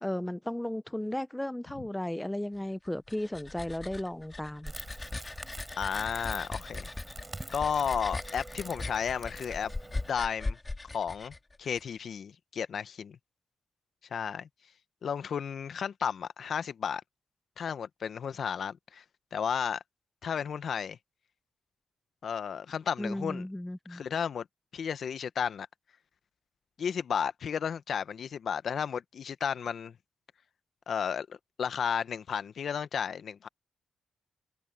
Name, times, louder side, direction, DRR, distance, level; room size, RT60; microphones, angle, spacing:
voice 1, 0.0-4.7 23.0-24.0, left 1 dB, 10° left, 0.7 m, -35 dB
sound 1, 2.9-11.8, left 2 dB, 25° left, 3.6 m, -39 dB
Crackle, 4.7-10.1, right 2 dB, 25° right, 4.7 m, -46 dB
voice 2, 5.8-6.9 7.5-9.7 10.1-10.6 10.9-13.2 14.1-14.5 15.0-17.0 17.6-19.0 19.3-19.8 20.2-21.0 22.2-23.4 23.9-24.4 24.7-25.7 26.8-29.9 30.9-33.5, left 7 dB, 65° left, 1.2 m, -33 dB
supercardioid pair, 60°, 0 cm